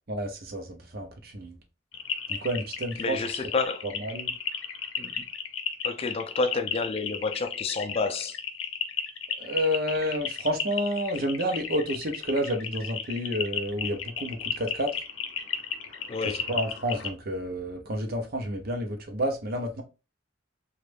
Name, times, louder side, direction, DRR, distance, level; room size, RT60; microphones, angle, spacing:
voice 1, 0.1-1.6 2.3-3.2 4.0-4.3 9.4-14.9 16.2-19.8, equal, 50° right, 0.7 m, -30 dB
sound 1, 1.9-17.1, left 7 dB, 80° left, 0.6 m, -34 dB
voice 2, 3.0-3.9 5.0-5.1 5.8-8.4 16.1-16.5, left 4 dB, 30° left, 0.4 m, -29 dB
3.1 x 2.4 x 3.3 m
head